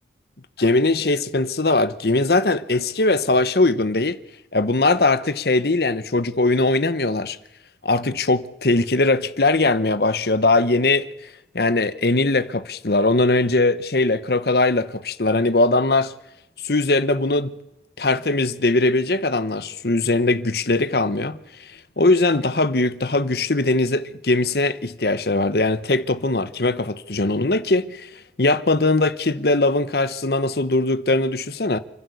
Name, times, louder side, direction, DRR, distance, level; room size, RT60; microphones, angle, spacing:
voice 1, 0.6-4.2 4.5-7.4 7.8-11.1 11.5-16.1 16.6-17.5 18.0-21.7 22.0-28.1 28.4-31.8, left 2 dB, 60° left, 1.1 m, -20 dB
29.5 x 12.0 x 8.3 m
head